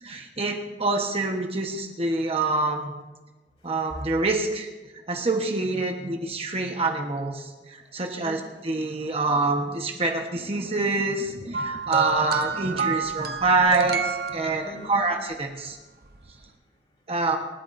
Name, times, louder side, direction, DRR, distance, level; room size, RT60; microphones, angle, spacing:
voice 1, 0.0-2.9 3.6-4.7 5.1-15.8 17.1-17.4, right 3 dB, 35° right, 2 dB, 1.2 m, -26 dB
voice 2, 3.6-4.2 8.0-9.1 14.6-15.0 16.0-17.1, equal, 40° left, -5 dB, 5.1 m, -45 dB
sound 1, 11.5-15.1 16.1-16.3, right 5 dB, 60° right, 0.9 m, -29 dB
27.5 x 12.5 x 2.7 m, 1.2 s
head